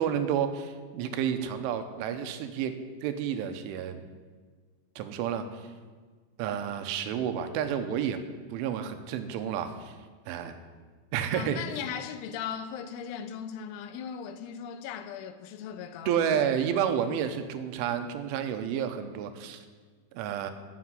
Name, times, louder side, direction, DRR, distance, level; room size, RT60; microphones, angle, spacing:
voice 1, 0.0-2.8 3.0-4.0 5.0-5.6 6.4-8.2 8.5-10.0 10.3-10.5 11.1-11.6 16.1-19.6 20.1-20.5, right 8 dB, 90° right, 3.4 m, -30 dB
voice 2, 11.3-16.4, left 8 dB, 85° left, 3.3 m, -38 dB
13.5 x 7.2 x 9.5 m
omnidirectional pair, 5.4 m